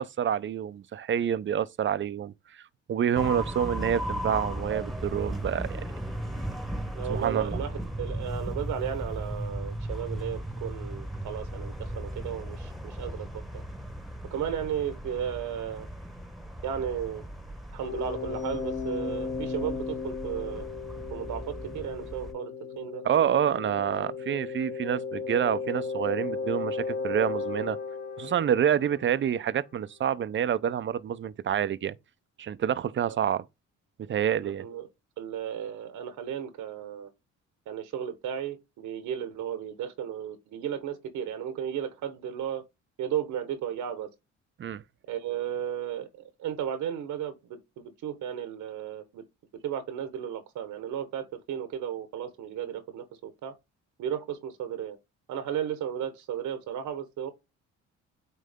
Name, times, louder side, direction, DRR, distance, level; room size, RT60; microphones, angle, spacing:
voice 1, 0.0-2.3 2.9-5.8 7.1-7.6 23.0-27.8 28.2-31.9 32.4-33.4 34.1-34.7 44.6-44.8, right 9 dB, 40° right, 0.5 m, -27 dB
sound 1, 3.1-22.3, right 1 dB, ahead, 1.1 m, -36 dB
voice 2, 6.9-13.4 14.3-15.9 16.6-17.2 17.7-20.7 21.1-23.0 33.1-33.2 34.4-34.9 35.2-37.1 37.7-42.6 43.0-44.1 45.1-49.2 49.6-53.5 54.0-55.0 55.3-57.3, right 9 dB, 90° right, 1.3 m, -34 dB
sound 2, 17.8-29.4, left 5 dB, 35° left, 0.9 m, -35 dB
9.2 x 3.2 x 3.6 m
cardioid pair, 90°, 30 cm